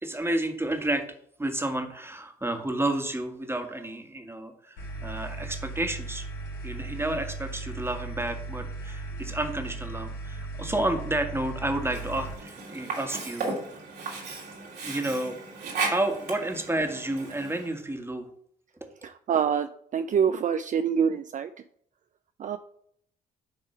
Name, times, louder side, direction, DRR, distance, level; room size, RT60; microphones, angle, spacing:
voice 1, 0.0-1.1 1.4-6.3 6.6-13.5 14.8-15.4 15.9-18.3 18.8-18.9, right 1 dB, 15° right, 5 dB, 1.7 m, -31 dB
sound 1, 4.8-12.3, right 2 dB, 80° left, 2.5 m, -37 dB
Sink (filling or washing), 11.8-17.8, right 3 dB, 70° right, 2.7 m, -35 dB
voice 2, 19.3-19.7 19.9-21.5 22.4-22.6, right 7 dB, 50° right, 10 dB, 0.5 m, -25 dB
9.9 x 3.6 x 5.7 m, 0.67 s
supercardioid pair, 60°, 17 cm